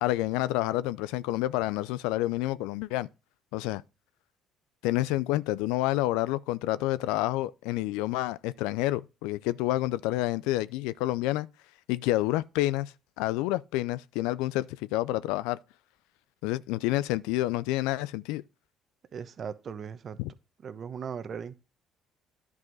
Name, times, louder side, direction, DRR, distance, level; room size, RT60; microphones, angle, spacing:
voice 1, 0.0-3.1 3.5-3.8 4.8-11.5 11.9-15.6 16.4-18.4 20.2-20.3, left 16 dB, 80° left, 0.4 m, -29 dB
voice 2, 19.1-20.2 20.6-21.5, right 7 dB, 50° right, 1.0 m, -38 dB
11.0 x 4.8 x 4.0 m
hypercardioid pair, 60°, 0 cm